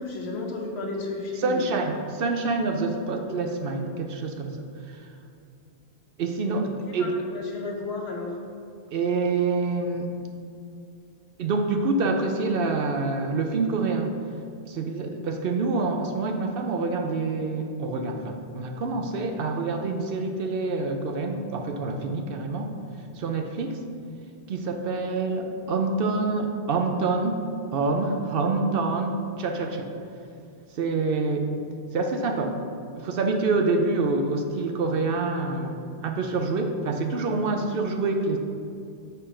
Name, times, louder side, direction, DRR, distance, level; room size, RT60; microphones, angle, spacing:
voice 1, 0.0-1.6 6.9-8.3, left 3 dB, 75° left, 0 dB, 1.2 m, -33 dB
voice 2, 1.4-4.7 6.2-7.1 8.9-10.1 11.4-14.1 14.7-22.7 23.2-23.8 24.5-27.4 27.7-29.9 30.8-31.5 31.9-32.5 32.9-38.4, right 3 dB, 65° right, 4 dB, 0.8 m, -26 dB
6.7 x 3.8 x 4.9 m, 2.4 s
omnidirectional pair, 1.1 m